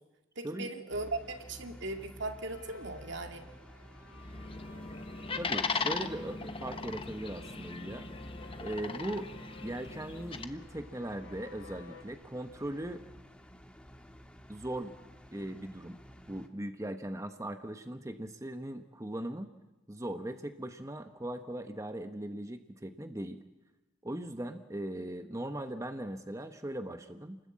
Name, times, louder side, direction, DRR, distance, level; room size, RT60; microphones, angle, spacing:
voice 1, 0.4-3.5, right 2 dB, 65° right, 5 dB, 2.4 m, -38 dB
sound 1, 0.9-16.5, equal, 5° left, 1.7 m, -52 dB
sound 2, 2.5-12.0, left 3 dB, 80° left, 6.7 m, -55 dB
sound 3, 4.1-10.5, left 4 dB, 30° left, 1.2 m, -38 dB
voice 2, 5.4-8.1 8.6-9.3 9.6-13.0 14.5-14.9 15.3-16.0 16.3-19.5 19.9-23.4 24.0-27.4, right 1 dB, 15° right, 8 dB, 1.0 m, -39 dB
29.0 x 20.5 x 8.6 m, 1.1 s
head